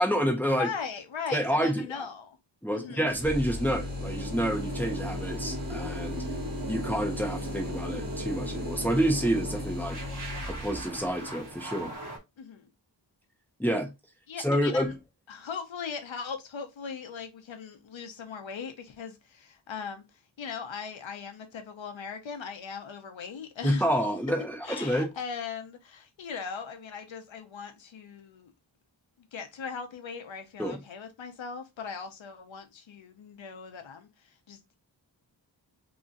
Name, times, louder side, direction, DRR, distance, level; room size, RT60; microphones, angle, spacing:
voice 1, 0.0-0.7 1.3-2.1 2.6-6.2 6.7-10.0 10.5-11.9 13.6-13.9 14.4-14.9 23.6-25.1 30.6-30.8, equal, 5° left, 0.9 m, -28 dB
voice 2, 0.6-2.4 2.7-3.0 12.4-12.7 14.3-14.9 15.3-20.0 20.4-23.9 24.6-28.5 29.3-34.8, left 6 dB, 90° left, 0.8 m, -39 dB
sound 1, 2.8-12.2, right 2 dB, 45° right, 1.4 m, -39 dB
sound 2, 3.1-11.1, left 2 dB, 20° right, 1.3 m, -37 dB
3.0 x 2.6 x 3.7 m
wide cardioid pair, 70°, 44 cm